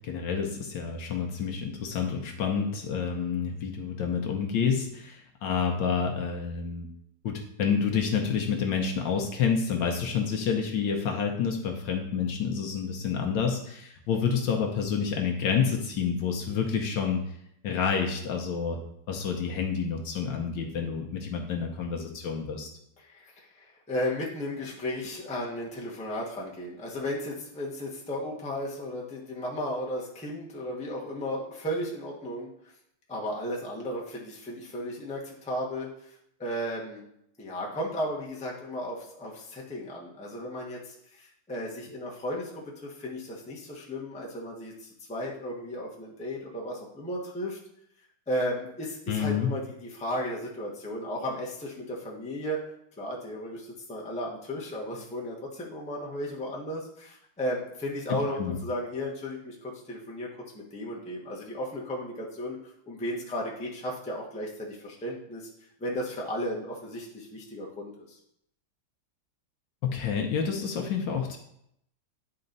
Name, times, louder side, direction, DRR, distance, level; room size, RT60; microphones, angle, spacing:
voice 1, 0.0-6.9 7.2-17.2 17.6-18.8 19.1-22.7 49.1-49.5 58.1-58.6 69.8-71.4, left 6 dB, 65° left, 2 dB, 1.4 m, -29 dB
voice 2, 23.0-32.5 33.1-35.9 36.4-37.0 37.4-47.6 48.3-52.6 53.0-60.3 60.5-65.5 65.8-68.2, equal, 5° left, -4 dB, 0.7 m, -35 dB
9.6 x 4.3 x 4.0 m, 0.76 s
omnidirectional pair, 2.4 m